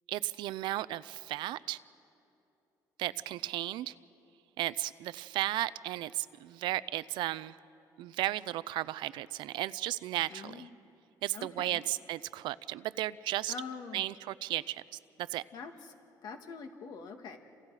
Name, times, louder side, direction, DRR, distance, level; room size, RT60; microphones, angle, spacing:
voice 1, 0.1-1.8 3.0-3.9 4.6-7.6 8.0-10.7 11.2-13.5 13.9-14.8 15.2-15.4, right 15 dB, 80° right, 17 dB, 0.5 m, -34 dB
voice 2, 10.3-10.7 11.3-11.8 13.5-14.0 15.5-15.7 16.2-17.4, left 5 dB, 60° left, 5 dB, 2.0 m, -44 dB
29.0 x 27.0 x 4.9 m, 2.7 s
cardioid pair, 145°, 8 cm